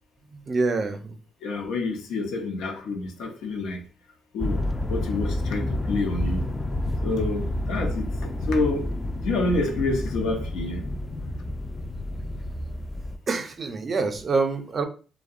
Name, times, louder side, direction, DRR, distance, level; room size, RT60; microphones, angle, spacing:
voice 1, 0.3-1.2 13.3-14.8, right 3 dB, 40° right, 0.4 m, -26 dB
voice 2, 1.4-3.8 4.3-4.6 4.9-6.5 7.0-8.9 9.2-10.9, left 3 dB, 85° left, 0.5 m, -28 dB
sound 1, 4.4-13.2, left 1 dB, 20° left, 0.3 m, -29 dB
2.6 x 2.0 x 2.4 m
cardioid pair, 90°, 0 cm